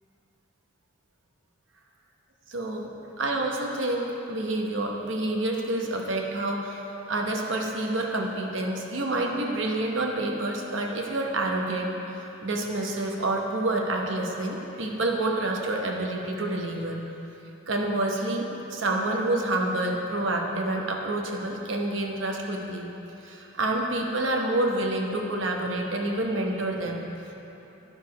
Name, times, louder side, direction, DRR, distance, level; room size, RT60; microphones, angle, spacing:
voice 1, 2.5-6.8 7.1-17.0 17.7-22.9 23.2-27.3, right 2 dB, 65° right, 1 dB, 0.9 m, -28 dB
10.0 x 4.7 x 5.1 m, 3.0 s
head